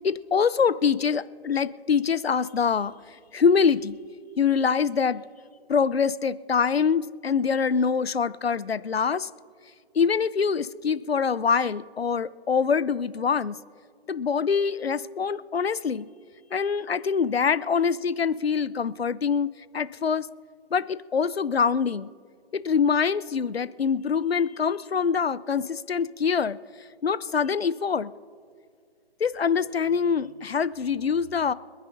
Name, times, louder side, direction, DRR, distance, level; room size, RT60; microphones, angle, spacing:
voice 1, 0.0-2.9 3.3-4.0 4.4-5.2 5.7-9.3 9.9-13.6 14.1-16.1 16.5-19.5 19.7-20.3 20.7-22.1 22.5-26.6 27.0-28.1 29.2-31.5, left 6 dB, 70° left, 17 dB, 0.8 m, -24 dB
26.0 x 9.8 x 2.7 m, 2.2 s
hypercardioid pair, 170°, 31 cm